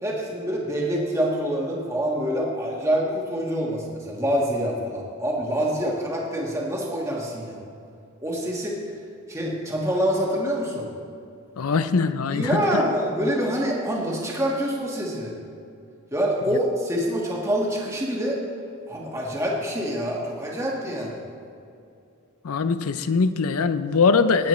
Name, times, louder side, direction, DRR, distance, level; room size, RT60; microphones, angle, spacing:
voice 1, 0.0-7.6 8.2-8.8 9.3-10.9 12.3-15.3 16.1-18.4 18.9-21.2, equal, 15° right, -2 dB, 1.5 m, -26 dB
voice 2, 11.6-12.6 22.4-24.5, left 4 dB, 80° left, 12 dB, 0.5 m, -22 dB
18.0 x 8.3 x 3.2 m, 2.5 s
head